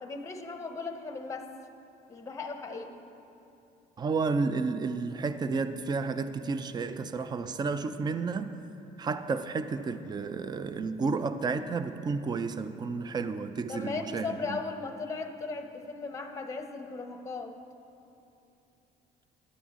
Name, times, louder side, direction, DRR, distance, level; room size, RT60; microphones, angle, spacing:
voice 1, 0.0-1.5 2.1-2.9 13.7-17.6, left 4 dB, 20° left, 5 dB, 0.8 m, -37 dB
voice 2, 4.0-8.5 9.0-14.6, right 4 dB, 25° right, 11 dB, 0.4 m, -31 dB
12.5 x 8.8 x 3.7 m, 2.8 s
cardioid pair, 110°, 17 cm